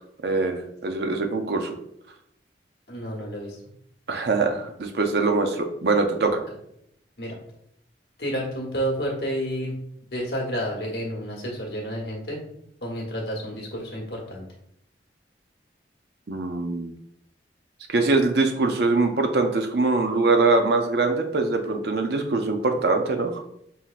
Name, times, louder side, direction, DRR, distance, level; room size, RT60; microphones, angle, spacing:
voice 1, 0.2-1.7 4.1-6.4 16.3-16.9 17.9-23.3, right 3 dB, 65° right, 6 dB, 0.5 m, -23 dB
voice 2, 2.9-3.6 7.2-7.4 8.2-9.7 10.1-12.4 12.8-14.5, equal, 60° left, -2 dB, 1.3 m, -30 dB
5.6 x 2.8 x 2.5 m, 0.74 s
head